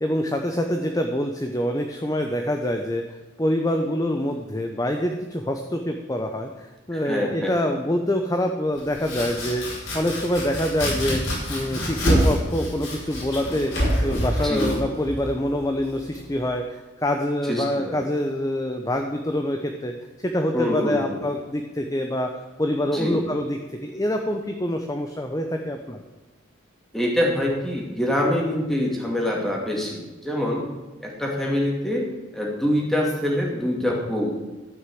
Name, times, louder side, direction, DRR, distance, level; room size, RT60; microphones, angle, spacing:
voice 1, 0.0-13.7 14.0-19.9 20.2-22.3 22.6-26.0, left 1 dB, 15° left, 4 dB, 0.7 m, -26 dB
voice 2, 6.9-7.5 14.4-14.7 17.4-18.0 20.5-21.2 22.9-23.2 26.9-30.6 31.0-32.1 32.3-34.3, left 1 dB, ahead, -2 dB, 2.4 m, -25 dB
Domestic sounds home sounds, 8.7-16.5, equal, 80° left, 5.0 m, -27 dB
13.0 x 6.2 x 7.7 m, 1.2 s
head